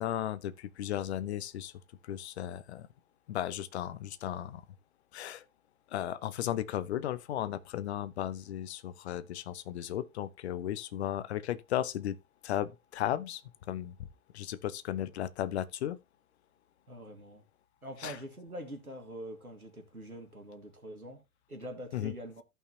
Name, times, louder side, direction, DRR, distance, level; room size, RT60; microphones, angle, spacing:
voice 1, 0.0-1.7 2.0-2.9 3.3-4.6 5.1-5.4 5.9-12.2 12.4-13.9 14.3-16.0 18.0-18.2 21.9-22.1, left 11 dB, 50° left, 0.9 m, -35 dB
voice 2, 16.9-17.5 17.8-21.2 21.5-22.4, right 1 dB, 90° right, 2.0 m, -44 dB
14.5 x 5.6 x 2.8 m
figure-of-eight pair, 100°, 42 cm